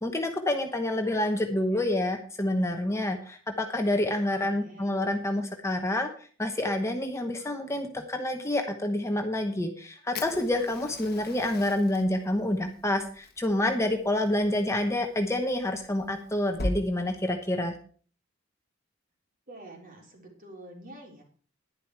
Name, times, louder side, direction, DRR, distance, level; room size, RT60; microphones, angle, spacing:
voice 1, 0.0-6.1 6.4-17.7, left 1 dB, 15° left, 5 dB, 1.1 m, -28 dB
voice 2, 4.3-5.0 19.5-21.2, right 1 dB, 45° right, 1 dB, 3.7 m, -47 dB
Fire, 10.1-16.8, left 2 dB, 50° left, 1.2 m, -40 dB
11.0 x 11.0 x 4.7 m, 0.43 s
head